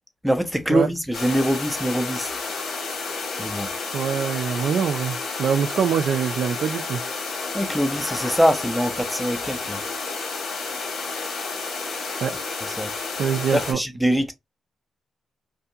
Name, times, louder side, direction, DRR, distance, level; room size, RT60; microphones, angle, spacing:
voice 1, 0.2-2.3 3.4-3.7 7.5-9.8 12.6-12.9 13.5-14.3, equal, ahead, 0.4 m, -23 dB
sound 1, 1.1-13.7, left 4 dB, 75° left, 1.4 m, -31 dB
voice 2, 3.9-7.0 12.2-12.3 13.2-13.8, right 7 dB, 70° right, 0.3 m, -24 dB
2.6 x 2.4 x 2.6 m
cardioid pair, 120°, 0 cm